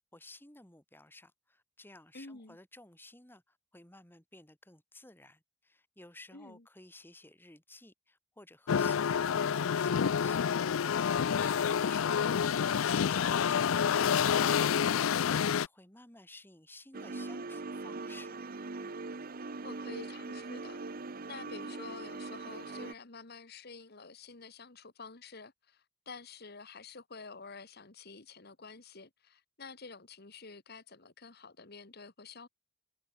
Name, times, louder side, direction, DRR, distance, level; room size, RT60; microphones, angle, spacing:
voice 1, 0.1-11.0 11.2-18.4, left 2 dB, 10° left, 2.7 m, -55 dB
voice 2, 2.1-2.6 6.3-6.6 12.1-12.3 19.6-20.8 21.3-32.5, left 4 dB, 50° left, 1.7 m, -49 dB
sound 1, 8.7-15.7, left 7 dB, 75° left, 0.4 m, -28 dB
sound 2, 16.9-22.9, right 3 dB, 45° right, 0.8 m, -41 dB
head